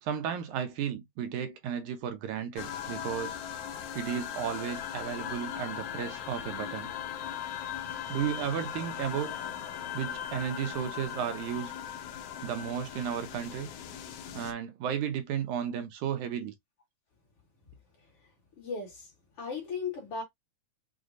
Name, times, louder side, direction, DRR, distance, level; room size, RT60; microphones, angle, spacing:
voice 1, 0.0-3.4 3.9-6.9 8.1-9.4 9.9-11.7 12.4-13.7 14.3-16.5, right 9 dB, 80° right, 2.1 m, -34 dB
sound 1, 2.6-14.5, left 9 dB, 80° left, 1.3 m, -39 dB
voice 2, 18.6-19.1 19.4-20.2, left 5 dB, 55° left, 2.0 m, -36 dB
6.2 x 2.3 x 2.5 m
omnidirectional pair, 3.6 m